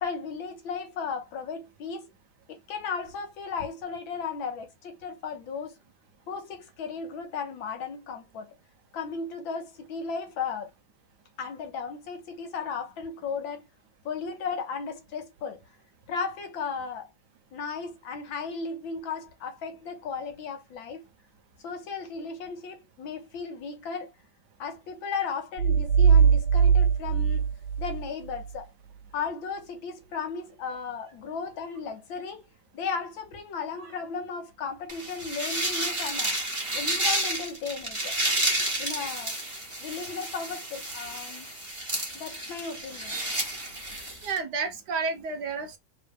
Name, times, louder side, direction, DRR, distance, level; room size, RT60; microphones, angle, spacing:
voice 1, 0.0-2.1 2.7-5.8 6.3-8.6 8.9-10.7 11.4-13.7 14.1-15.6 16.1-17.1 17.5-21.0 21.6-24.1 24.6-27.5 27.8-28.7 29.1-32.4 32.7-36.4 36.7-38.2 38.8-39.4 39.8-41.5 42.1-43.2, left 5 dB, 75° left, 1.9 m, -35 dB
sound 1, 25.6-28.5, right 6 dB, 85° right, 1.4 m, -21 dB
sound 2, 34.9-44.4, right 1 dB, 15° right, 1.7 m, -31 dB
voice 2, 44.2-45.8, right 4 dB, 65° right, 1.3 m, -31 dB
5.0 x 3.9 x 2.3 m
omnidirectional pair, 2.2 m